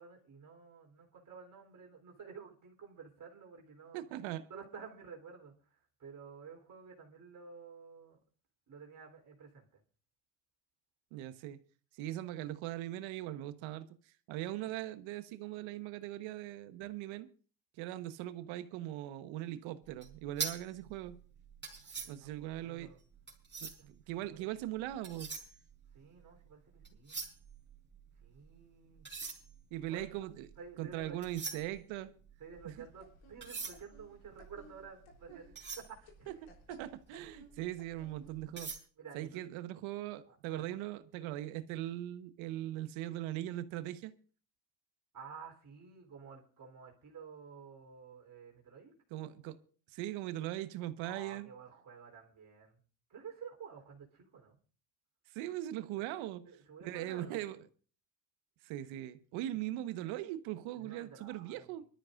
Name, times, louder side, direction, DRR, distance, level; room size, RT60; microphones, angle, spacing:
voice 1, 0.0-4.0 4.5-8.2 8.7-9.8 21.7-23.0 24.1-24.5 25.9-27.2 28.2-29.1 29.9-30.3 30.6-31.2 32.4-36.3 39.0-39.5 40.3-40.8 45.1-48.9 51.0-52.8 53.1-54.6 56.0-56.1 56.4-57.5 60.7-61.8, right 6 dB, 40° right, 3.8 m, -52 dB
voice 2, 3.9-4.5 11.1-11.6 12.0-13.9 14.3-17.3 17.8-21.2 22.1-22.9 23.6-25.3 29.7-30.5 30.8-32.1 32.6-32.7 35.3-35.4 36.7-38.7 39.1-44.1 49.1-49.6 49.9-51.5 55.3-56.4 56.8-57.6 58.6-61.8, right 14 dB, 70° right, 1.3 m, -40 dB
sound 1, 19.9-24.0 24.8-26.5 26.8-28.5 28.9-36.9 37.4-37.6 38.0-38.8, right 5 dB, 20° right, 4.4 m, -44 dB
sound 2, 32.5-38.5, left 2 dB, 60° left, 3.9 m, -61 dB
24.5 x 13.0 x 2.6 m
supercardioid pair, 80°, 50 cm